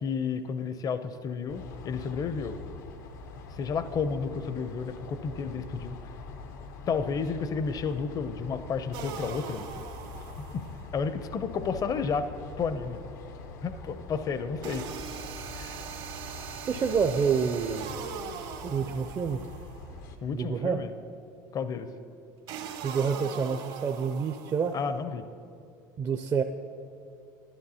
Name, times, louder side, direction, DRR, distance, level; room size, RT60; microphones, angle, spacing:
voice 1, 0.0-2.6 3.5-6.0 6.9-9.9 10.5-10.6 10.9-12.3 12.6-13.0 13.6-14.9 15.5-15.8 20.2-20.9 21.5-21.9 24.7-25.3, left 5 dB, 35° left, 11 dB, 0.5 m, -31 dB
sound 1, 1.5-20.2, left 4 dB, 80° left, 0.7 m, -44 dB
sound 2, 8.9-10.9 14.6-19.9 22.5-24.9, right 7 dB, 60° right, 0.8 m, -41 dB
voice 2, 16.7-18.0 18.6-19.4 20.3-20.8 22.8-24.7 26.0-26.4, right 6 dB, 35° right, 7 dB, 0.4 m, -28 dB
12.0 x 11.0 x 2.8 m, 2.5 s
hypercardioid pair, 85°, 10 cm